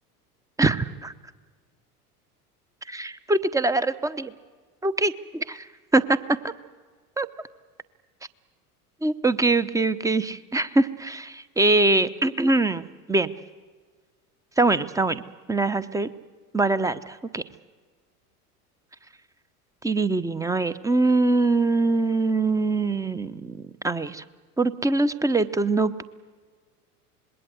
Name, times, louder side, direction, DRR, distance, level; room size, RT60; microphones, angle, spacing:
voice 1, 0.6-1.1 2.9-4.3 4.8-5.7 5.9-6.4 7.2-7.3 9.0-13.3 14.6-15.2 15.5-16.1 16.5-17.4 19.8-24.2 24.6-26.0, right 2 dB, 5° right, 15 dB, 0.8 m, -23 dB
26.0 x 21.0 x 8.0 m, 1.5 s
figure-of-eight pair, 80°, 46 cm